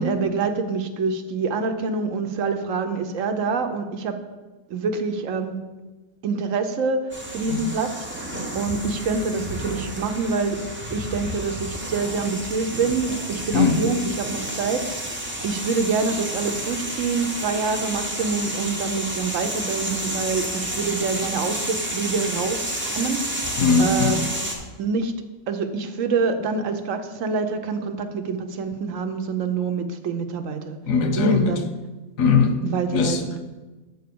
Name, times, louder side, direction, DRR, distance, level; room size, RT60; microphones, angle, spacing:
voice 1, 0.0-4.2 4.7-5.6 6.2-8.2 8.5-10.6 10.9-24.2 24.8-25.1 25.5-30.8 31.2-31.7 32.6-33.4, right 4 dB, 75° right, 7 dB, 1.1 m, -26 dB
sound 1, 7.1-24.6, right 1 dB, 10° right, 0.9 m, -31 dB
voice 2, 13.5-13.8 23.6-24.1 30.9-31.5 32.2-32.6 32.9-33.2, left 5 dB, 85° left, 7 dB, 1.2 m, -19 dB
8.0 x 4.3 x 6.8 m, 1.2 s
omnidirectional pair, 1.3 m